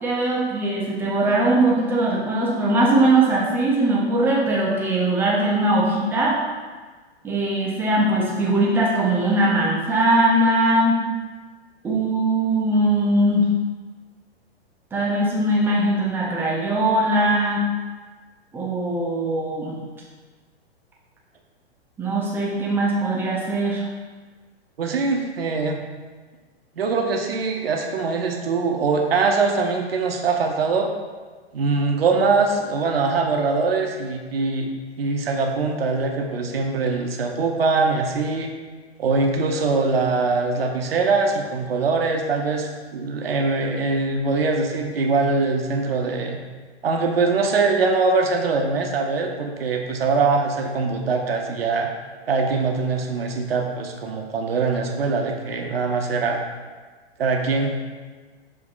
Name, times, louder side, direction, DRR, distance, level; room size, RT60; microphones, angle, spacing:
voice 1, 0.0-6.4 7.2-11.0 11.8-13.5 14.9-17.6 18.5-19.8 22.0-23.9, right 1 dB, 5° right, -4 dB, 0.6 m, -20 dB
voice 2, 24.8-25.8 26.8-30.9 31.5-34.7 35.0-38.5 39.0-46.4 46.8-51.9 52.3-56.4 57.2-57.8, right 4 dB, 65° right, 2 dB, 0.7 m, -22 dB
7.2 x 2.7 x 2.5 m, 1.4 s
figure-of-eight pair, 105°, 32 cm